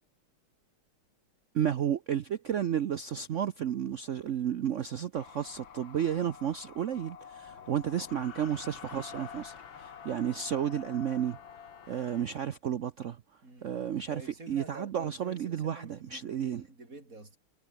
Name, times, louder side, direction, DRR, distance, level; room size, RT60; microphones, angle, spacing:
voice 1, 1.5-11.4 11.9-13.2 13.6-14.2 14.5-16.6, right 9 dB, 90° right, 0.6 m, -32 dB
sound 1, 5.2-12.2, left 7 dB, 70° left, 2.6 m, -48 dB
voice 2, 13.4-13.8 14.1-17.4, right 2 dB, 40° right, 6.7 m, -48 dB
omnidirectional pair, 2.3 m